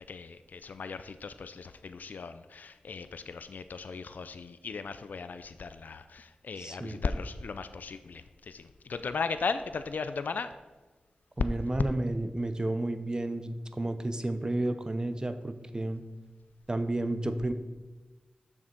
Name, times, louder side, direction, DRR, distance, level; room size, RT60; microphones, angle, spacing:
voice 1, 0.1-10.5, left 4 dB, 75° left, 11 dB, 0.3 m, -37 dB
voice 2, 6.6-7.0 11.4-16.0 16.7-17.5, right 1 dB, 25° right, 9 dB, 0.6 m, -31 dB
6.6 x 6.0 x 4.4 m, 1.2 s
wide cardioid pair, 60°, 3 cm